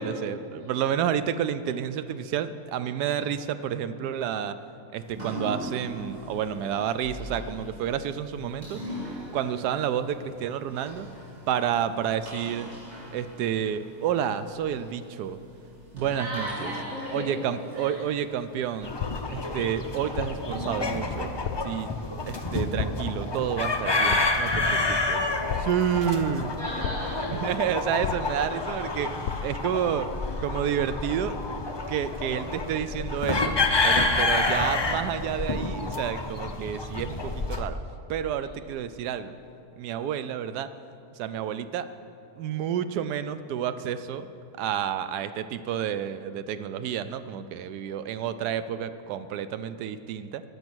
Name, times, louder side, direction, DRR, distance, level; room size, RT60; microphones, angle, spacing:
voice 1, 0.0-4.6 4.9-8.8 9.3-11.1 11.5-12.7 13.1-15.4 15.9-16.7 17.1-18.9 19.3-21.3 21.6-21.9 22.3-25.3 25.6-26.6 27.3-30.1 30.4-31.4 31.9-37.8 38.1-39.4 39.8-40.7 41.1-41.9 42.4-44.3 44.6-50.4, right 9 dB, 90° right, 12 dB, 1.2 m, -30 dB
sound 1, 4.9-22.8, equal, 30° right, 1.8 m, -42 dB
voice 2, 16.1-17.4 17.7-18.0 26.6-27.6 28.0-28.1 38.4-38.5, equal, 60° right, -5 dB, 2.5 m, -35 dB
sound 2, 18.8-37.6, left 3 dB, 45° left, 0.3 m, -29 dB
sound 3, 19.0-19.5 20.2-20.6 21.4-21.8 22.8-23.2 24.1-24.5 25.5-26.0 26.8-27.3 28.0-28.6 29.2-29.7, left 9 dB, 85° left, 1.1 m, -34 dB
20.0 x 7.1 x 6.1 m, 2.6 s
omnidirectional pair, 1.7 m